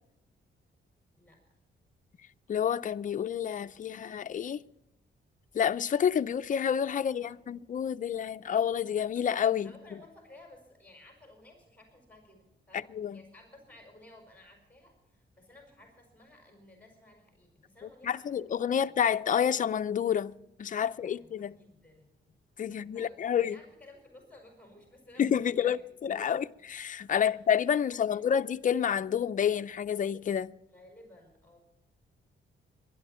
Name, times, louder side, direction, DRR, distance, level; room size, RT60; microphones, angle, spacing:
voice 1, 1.2-1.6 7.1-7.4 9.6-19.0 20.8-22.4 22.7-25.8 26.2-26.6 27.1-27.5 27.7-28.4 30.7-31.6, left 1 dB, 5° left, 5.1 m, -56 dB
voice 2, 2.5-4.6 5.5-9.7 12.7-13.2 18.0-20.3 20.6-21.5 22.6-23.6 25.2-30.5, left 8 dB, 40° left, 0.5 m, -29 dB
22.5 x 11.5 x 4.3 m
wide cardioid pair, 130°, 20 cm